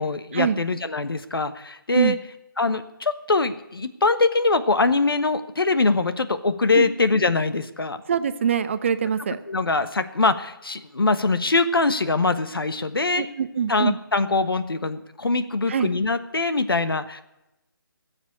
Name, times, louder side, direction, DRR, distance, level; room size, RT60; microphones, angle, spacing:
voice 1, 0.0-2.2 2.6-8.0 9.5-13.2 13.7-17.2, left 3 dB, 80° left, 11 dB, 1.2 m, -23 dB
voice 2, 8.1-9.4 13.2-14.0 15.7-15.9, right 7 dB, 35° right, 13 dB, 0.6 m, -23 dB
14.5 x 7.3 x 9.6 m, 0.92 s
figure-of-eight pair, 155°, 12 cm